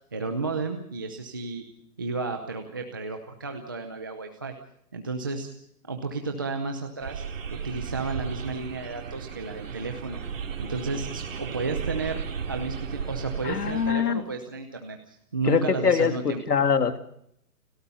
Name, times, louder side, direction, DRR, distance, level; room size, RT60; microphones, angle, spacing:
voice 1, 0.1-1.6 2.0-4.5 4.9-5.5 5.9-7.2 7.5-10.2 10.6-12.2 12.5-16.4, right 3 dB, 15° right, 4 dB, 0.7 m, -32 dB
sound 1, 7.0-13.9, right 6 dB, 55° right, 3.1 m, -35 dB
voice 2, 13.4-14.2 15.5-17.0, left 7 dB, 80° left, 8 dB, 2.8 m, -23 dB
30.0 x 13.0 x 6.9 m, 0.71 s
hypercardioid pair, 170°, 46 cm